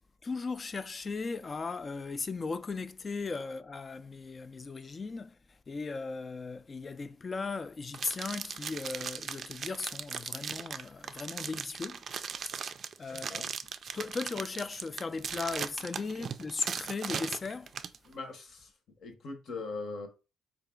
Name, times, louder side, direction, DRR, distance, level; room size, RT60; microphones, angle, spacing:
voice 1, 0.2-12.0 13.0-13.5 13.9-17.7, left 4 dB, 35° left, 0.3 m, -37 dB
sound 1, 7.9-18.0, right 6 dB, 55° right, 0.3 m, -38 dB
voice 2, 13.1-13.5 16.2-16.3 18.0-20.1, left 3 dB, 60° left, 0.9 m, -41 dB
3.9 x 2.4 x 3.7 m
cardioid pair, 90°, 0 cm